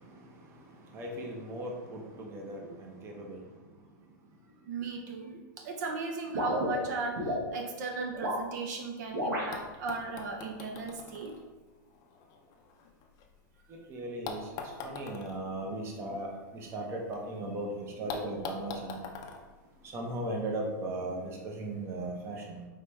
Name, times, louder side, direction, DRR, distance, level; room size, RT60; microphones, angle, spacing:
voice 1, 0.9-3.4 13.7-14.5 14.8-19.0 19.8-22.6, right 1 dB, 25° right, 1 dB, 0.7 m, -37 dB
voice 2, 4.7-11.4, right 3 dB, 60° right, 3 dB, 0.6 m, -37 dB
sound 1, 6.3-7.4 8.1-8.5 9.1-9.5, equal, 80° right, 1.5 m, -31 dB
sound 2, 9.1-9.2 9.5-13.6 14.2-17.2 17.5-17.6 18.1-20.5 21.5-21.6, left 5 dB, 35° left, 0.5 m, -44 dB
5.0 x 2.9 x 3.3 m, 1.2 s
hypercardioid pair, 145°, 11 cm